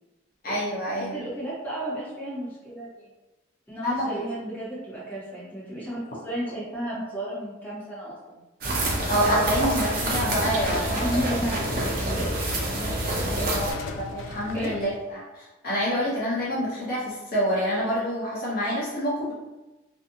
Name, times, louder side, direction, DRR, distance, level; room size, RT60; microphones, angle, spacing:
voice 1, 0.4-1.2 3.8-4.2 9.1-11.1 13.5-19.3, equal, 50° left, -7 dB, 0.6 m, -27 dB
voice 2, 1.0-3.1 3.7-8.4 10.8-12.3 12.6-13.6 14.5-14.8, equal, 10° left, -9 dB, 1.0 m, -33 dB
sound 1, 8.6-13.7, right 1 dB, 50° right, 0.6 m, -27 dB
sound 2, 9.6-15.1, left 3 dB, 85° left, 0.3 m, -37 dB
2.6 x 2.4 x 2.5 m, 1.1 s
head